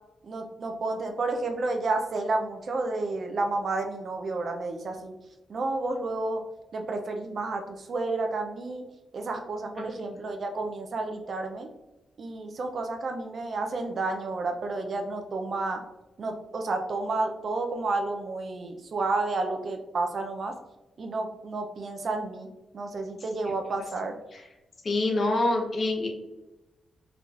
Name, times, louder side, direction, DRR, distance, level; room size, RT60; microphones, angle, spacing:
voice 1, 0.2-5.1 5.5-6.4 6.7-8.8 9.1-11.7 12.2-15.8 16.2-20.5 21.0-22.5 22.7-24.2, right 3 dB, 60° right, 4 dB, 0.4 m, -31 dB
voice 2, 24.8-26.1, left 2 dB, 50° left, 1 dB, 0.7 m, -26 dB
4.4 x 2.4 x 2.4 m, 1.0 s
cardioid pair, 55°, 0 cm